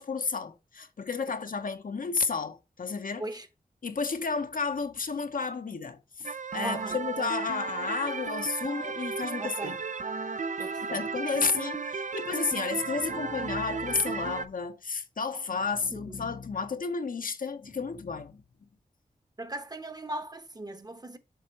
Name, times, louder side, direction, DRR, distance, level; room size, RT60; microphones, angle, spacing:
voice 1, 0.0-3.2 3.8-9.8 10.9-18.4, left 5 dB, 65° left, 1.0 m, -32 dB
sound 1, 6.2-14.5, right 5 dB, 55° right, 0.6 m, -34 dB
voice 2, 6.6-7.0 9.4-9.8 10.6-11.0 15.9-16.3 19.4-21.2, right 1 dB, 25° right, 1.1 m, -38 dB
7.3 x 3.7 x 4.4 m
cardioid pair, 45°, 16 cm